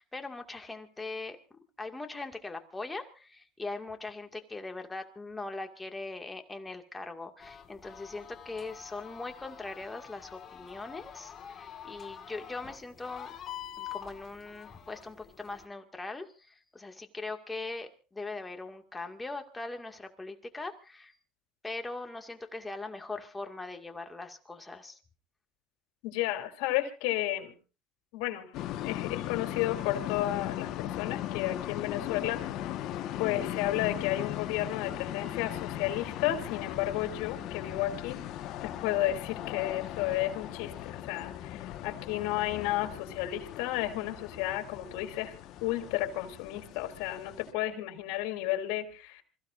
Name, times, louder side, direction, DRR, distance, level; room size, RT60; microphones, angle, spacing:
voice 1, 0.0-13.3 13.8-21.2 21.6-25.0, left 3 dB, 15° left, 5 dB, 2.2 m, -41 dB
sound 1, 7.4-15.7, left 9 dB, 40° left, 2.0 m, -46 dB
voice 2, 26.0-27.5 28.1-28.5 28.8-32.8 33.2-38.2 38.6-49.2, left 14 dB, 80° left, 6 dB, 3.2 m, -32 dB
sound 2, 28.5-47.5, left 12 dB, 60° left, 1.5 m, -38 dB
27.5 x 15.5 x 2.7 m, 0.35 s
supercardioid pair, 115°, 0 cm